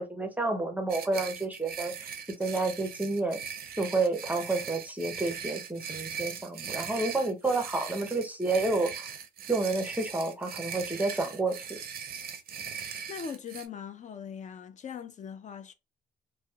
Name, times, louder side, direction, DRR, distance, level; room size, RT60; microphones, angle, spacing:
voice 1, 0.0-1.9 2.4-3.4 3.8-9.1 9.5-11.8, right 3 dB, 10° right, 0.6 m, -30 dB
sound 1, 0.9-13.7, right 7 dB, 50° right, 0.5 m, -40 dB
voice 2, 13.1-15.7, left 7 dB, 40° left, 0.4 m, -40 dB
2.7 x 2.0 x 2.3 m
cardioid pair, 90°, 20 cm